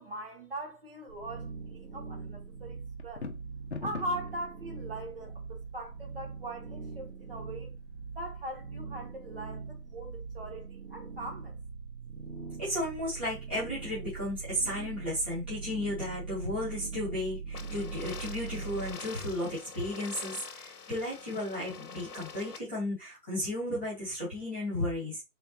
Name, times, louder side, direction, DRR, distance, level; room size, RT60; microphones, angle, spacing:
voice 1, 0.0-3.2 3.8-7.7 8.1-11.5, right 1 dB, 40° right, 1.0 m, -41 dB
sound 1, 1.1-18.9, right 5 dB, 85° right, 1.5 m, -42 dB
sound 2, 3.0-4.3, left 4 dB, 45° left, 0.6 m, -38 dB
voice 2, 12.6-25.2, left 1 dB, 5° right, 0.8 m, -34 dB
sound 3, 17.5-22.6, left 5 dB, 75° left, 0.8 m, -45 dB
3.6 x 3.3 x 2.7 m
figure-of-eight pair, 155°, 46 cm